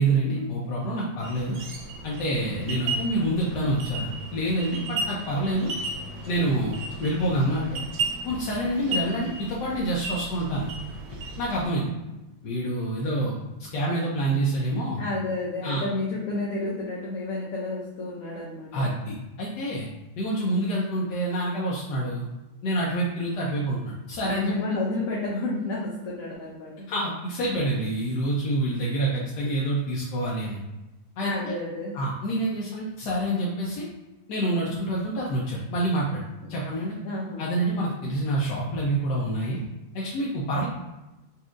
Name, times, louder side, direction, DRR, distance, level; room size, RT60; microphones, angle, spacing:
voice 1, 0.0-1.6 2.0-5.7 6.3-7.8 8.2-10.7 11.4-11.9 12.4-13.4 13.7-15.0 15.6-15.8 18.7-19.9 20.2-22.2 22.6-24.5 26.9-30.6 31.2-31.5 31.9-33.9 34.3-36.2 36.5-37.0 37.4-39.6 39.9-40.7, right 1 dB, 85° left, -4 dB, 1.2 m, -27 dB
sound 1, 1.2-11.7, right 3 dB, 90° right, 1.3 m, -35 dB
voice 2, 15.0-18.9 24.2-26.9 31.2-31.9 37.0-37.5, left 2 dB, 65° left, -4 dB, 1.0 m, -31 dB
4.2 x 2.6 x 2.4 m, 1.0 s
omnidirectional pair, 1.8 m